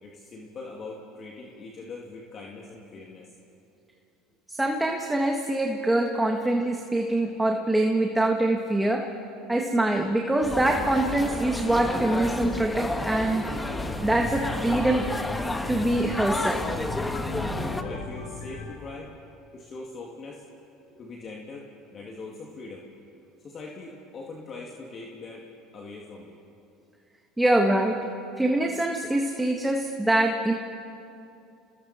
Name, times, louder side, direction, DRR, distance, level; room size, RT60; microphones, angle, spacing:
voice 1, 0.0-3.3 17.4-19.1 19.5-20.4 21.0-22.9 23.4-26.4, left 3 dB, 40° left, -1 dB, 2.5 m, -41 dB
voice 2, 4.6-9.1 9.5-13.5 14.0-15.0 15.7-16.6 27.4-28.1 28.4-30.5, right 1 dB, 10° right, 2 dB, 1.7 m, -24 dB
sound 1, 10.4-17.8, left 2 dB, 10° left, 1.3 m, -31 dB
sound 2, 13.6-18.7, left 4 dB, 80° left, 3.2 m, -38 dB
29.5 x 20.5 x 4.4 m, 2.6 s
supercardioid pair, 90°, 0 cm